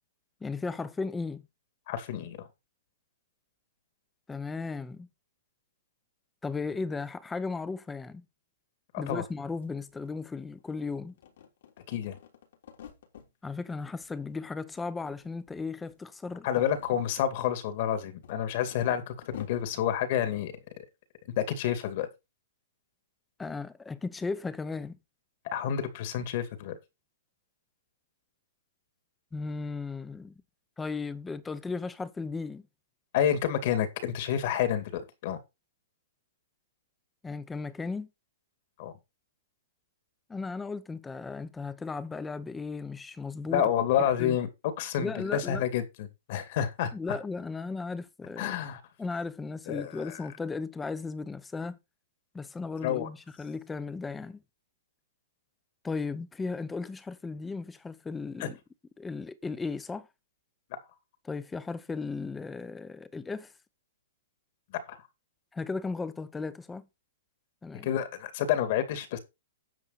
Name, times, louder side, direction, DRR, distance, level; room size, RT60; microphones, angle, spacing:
voice 1, 0.4-1.4 4.3-5.1 6.4-8.2 9.0-11.1 13.4-16.5 23.4-25.0 29.3-30.3 30.8-32.6 37.2-38.1 40.3-43.7 44.2-44.4 45.0-45.6 46.9-48.6 49.0-51.8 52.3-54.4 55.8-58.6 59.0-60.1 61.2-63.5 65.5-66.9 67.6-67.9, left 4 dB, 10° left, 0.8 m, -36 dB
voice 2, 1.9-2.5 8.9-9.2 11.9-12.2 16.4-20.5 21.4-22.1 25.5-26.8 33.1-35.4 38.8-38.9 43.5-46.9 48.4-48.8 49.7-50.2 52.8-53.1 58.4-58.5 64.7-65.0 67.8-69.2, left 9 dB, 45° left, 2.3 m, -29 dB
sound 1, 9.3-9.4 9.6-10.8 11.1-13.3 13.7-14.4 14.7-15.6 15.8-16.0 16.5-19.8, left 8 dB, 65° left, 3.6 m, -51 dB
10.5 x 7.3 x 4.2 m
hypercardioid pair, 160°, 0 cm